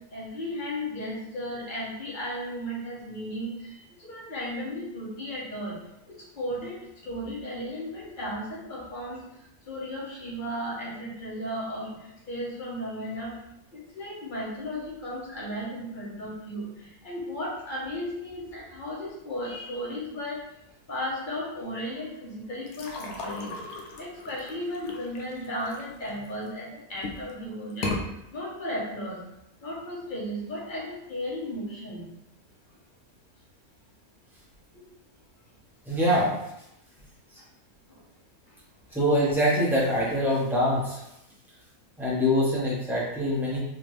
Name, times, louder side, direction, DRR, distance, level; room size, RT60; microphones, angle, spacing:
voice 1, 0.1-5.7 6.1-9.2 9.7-13.3 13.7-20.4 20.9-27.9 28.3-29.2 29.6-32.1 34.7-34.8 37.9-38.0, equal, 35° left, -5 dB, 1.3 m, -35 dB
sound 1, 22.7-26.5 26.9-27.3 27.7-28.0, left 3 dB, 75° left, 1.1 m, -36 dB
voice 2, 35.9-36.3 38.9-41.0 42.0-43.6, equal, ahead, -7 dB, 1.2 m, -24 dB
3.9 x 3.4 x 3.3 m, 0.85 s
omnidirectional pair, 1.6 m